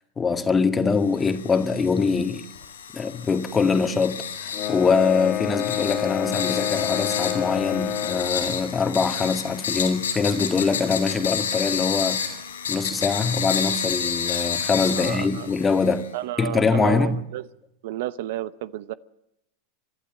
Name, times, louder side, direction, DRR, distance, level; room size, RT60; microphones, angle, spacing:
voice 1, 0.2-2.5 2.9-12.2 12.7-16.1 16.4-17.2, left 5 dB, 20° left, 1.9 m, -23 dB
sound 1, 1.2-16.1, left 7 dB, 90° left, 5.1 m, -30 dB
sound 2, 4.5-8.4, left 10 dB, 45° left, 2.7 m, -28 dB
voice 2, 14.9-15.5 16.1-17.5 17.8-18.9, right 14 dB, 70° right, 0.8 m, -31 dB
29.0 x 12.0 x 8.8 m
hypercardioid pair, 100°, 0 cm